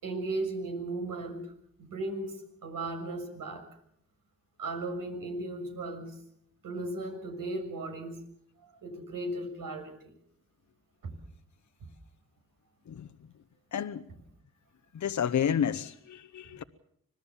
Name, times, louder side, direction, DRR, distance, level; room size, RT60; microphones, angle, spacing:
voice 1, 0.0-1.5 1.8-3.7 4.6-6.2 6.6-8.2 8.6-9.9 11.0-11.1, right 2 dB, 80° right, 6.6 m, -36 dB
voice 2, 13.7-14.1 14.9-16.6, left 8 dB, 60° left, 0.9 m, -30 dB
26.0 x 18.5 x 7.1 m
cardioid pair, 65°, 33 cm